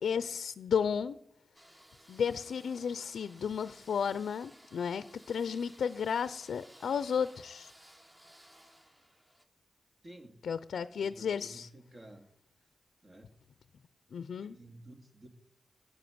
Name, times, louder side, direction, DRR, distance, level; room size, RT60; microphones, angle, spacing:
voice 1, 0.0-1.2 2.1-7.7 10.4-11.7 14.1-14.6, left 7 dB, 85° left, 14 dB, 0.6 m, -33 dB
sound 1, 1.5-9.4, equal, 20° right, 2.4 m, -58 dB
voice 2, 10.0-10.4 10.8-12.3 12.6-12.7 13.0-13.3 14.3-15.3, right 1 dB, 40° right, 4 dB, 2.8 m, -53 dB
15.0 x 9.5 x 9.5 m, 0.78 s
cardioid pair, 70°, 0 cm